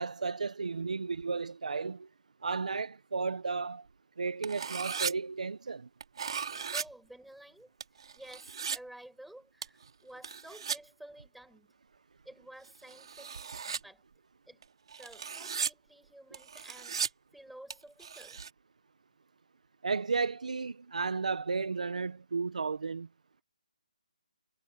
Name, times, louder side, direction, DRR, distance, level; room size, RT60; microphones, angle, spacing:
voice 1, 0.0-2.1 2.4-3.9 4.2-5.9 19.8-23.1, right 4 dB, 65° right, 1.0 m, -33 dB
sound 1, 4.4-5.1 6.0-6.8 7.8-8.8 9.6-9.9 10.2-10.8 12.7-13.8 14.6-15.7 16.3-17.1 17.7-17.8 18.0-18.5, right 6 dB, 40° right, 3.5 m, -36 dB
voice 2, 6.5-7.7 8.1-11.7 12.2-13.3 13.6-14.0 14.5-14.6 15.0-18.4, right 1 dB, ahead, 5.8 m, -52 dB
hypercardioid pair, 175°, 4 cm